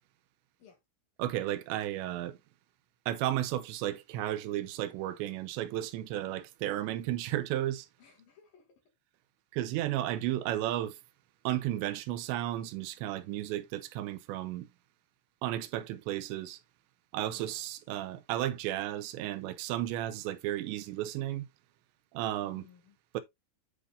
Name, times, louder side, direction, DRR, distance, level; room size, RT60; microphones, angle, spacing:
voice 1, 1.2-2.4 3.1-7.9 9.5-11.0 11.4-14.7 15.4-16.6 17.1-21.5 22.1-22.6 23.1-23.2, right 13 dB, 85° right, 2.9 m, -33 dB
voice 2, 8.0-8.8 17.3-17.7 22.4-23.0, left 8 dB, 55° left, 3.8 m, -59 dB
9.8 x 5.3 x 2.5 m
omnidirectional pair, 5.2 m